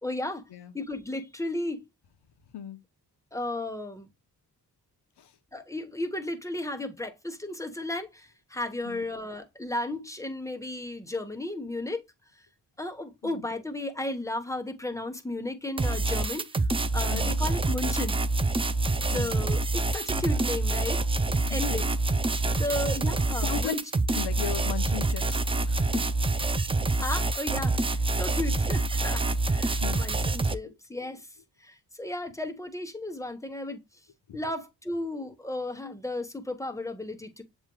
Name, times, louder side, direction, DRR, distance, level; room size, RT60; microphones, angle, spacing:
voice 1, 0.0-0.4 0.7-1.8 3.3-4.1 5.5-12.0 12.8-16.4 16.9-18.2 19.1-21.0 21.5-21.9 22.6-23.8 27.0-31.2 31.6-33.8 34.3-37.4, left 1 dB, 5° left, 0.9 m, -34 dB
sound 1, 15.8-30.5, right 2 dB, 15° right, 0.3 m, -26 dB
voice 2, 19.1-19.4 21.3-21.8 23.4-23.8 24.1-26.0 29.8-30.0 30.6-30.7 34.3-34.4, left 9 dB, 70° left, 0.8 m, -37 dB
7.2 x 3.1 x 2.2 m
cardioid pair, 60°, 41 cm